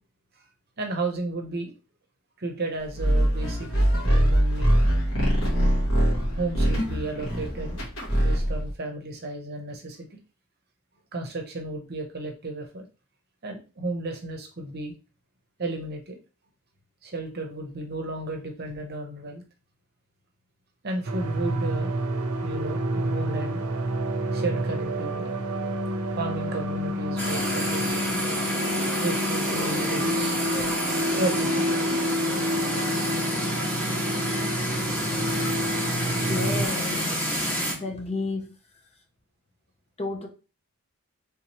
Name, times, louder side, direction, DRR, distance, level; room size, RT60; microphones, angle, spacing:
voice 1, 0.8-1.7 2.4-4.8 6.4-7.8 8.2-10.2 11.1-12.8 13.4-14.9 15.6-16.2 17.0-19.4 20.8-21.9 22.4-23.6 24.3-25.3 26.1-28.3 29.0-30.4 31.1-31.7, right 2 dB, 45° right, 0.8 m, -33 dB
sound 1, 3.0-8.7, equal, 60° left, 1.6 m, -23 dB
sound 2, 21.0-36.7, equal, 75° right, 0.6 m, -29 dB
sound 3, 27.2-37.7, equal, 10° left, 1.3 m, -28 dB
voice 2, 36.1-37.2 37.8-38.5 40.0-40.3, left 3 dB, 25° left, 0.5 m, -31 dB
3.6 x 2.9 x 2.9 m
head